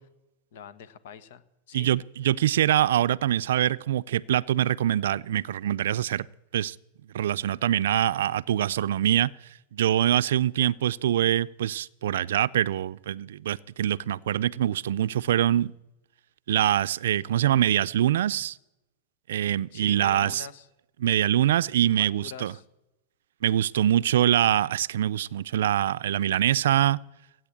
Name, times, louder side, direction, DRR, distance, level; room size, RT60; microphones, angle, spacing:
voice 1, 0.5-1.9 19.7-20.7 22.0-22.6, left 8 dB, 70° left, 15 dB, 1.3 m, -44 dB
voice 2, 1.7-6.3 6.5-6.8 7.1-9.3 9.7-15.7 16.5-18.6 19.3-20.5 21.0-22.5 23.4-27.0, right 11 dB, 85° right, 18 dB, 0.4 m, -24 dB
16.5 x 9.1 x 8.6 m, 0.94 s
supercardioid pair, 135°, 0 cm